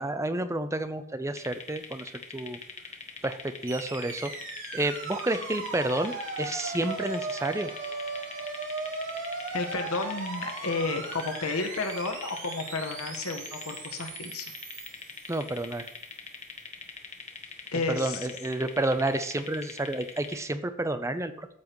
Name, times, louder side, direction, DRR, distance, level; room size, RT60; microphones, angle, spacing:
voice 1, 0.0-2.6 3.2-4.3 4.7-6.1 6.4-7.7 15.3-15.9 17.9-21.5, right 2 dB, 15° right, 10 dB, 0.6 m, -30 dB
sound 1, 1.4-20.4, left 5 dB, 30° left, 1.3 m, -43 dB
sound 2, 3.7-15.9, right 2 dB, 60° right, 3.0 m, -38 dB
voice 2, 9.5-14.5 17.7-18.3, left 3 dB, 80° left, 6 dB, 1.4 m, -32 dB
14.0 x 7.2 x 3.1 m, 0.71 s
head